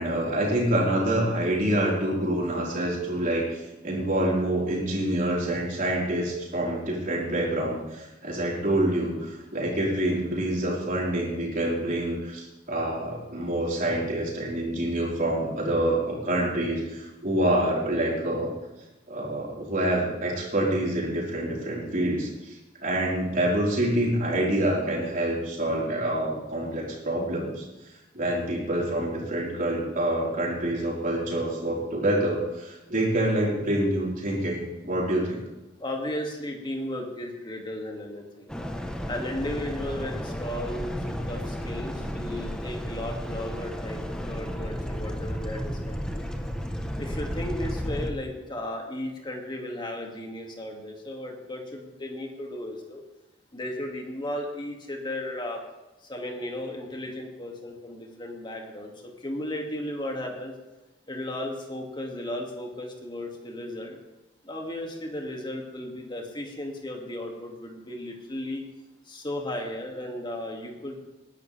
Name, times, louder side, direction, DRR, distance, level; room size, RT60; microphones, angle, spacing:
voice 1, 0.0-18.5 19.1-22.6 22.8-27.6 28.1-35.4, right 1 dB, 50° right, -4 dB, 4.6 m, -26 dB
voice 2, 35.8-38.5 39.1-46.2 47.0-53.0 53.5-55.6 56.1-58.9 59.2-60.5 61.1-64.0 64.4-68.6 69.1-71.0, left 1 dB, 25° left, 1 dB, 2.3 m, -35 dB
sound 1, 38.5-48.1, equal, 5° left, 1.0 m, -33 dB
20.0 x 11.5 x 3.5 m, 1.0 s
head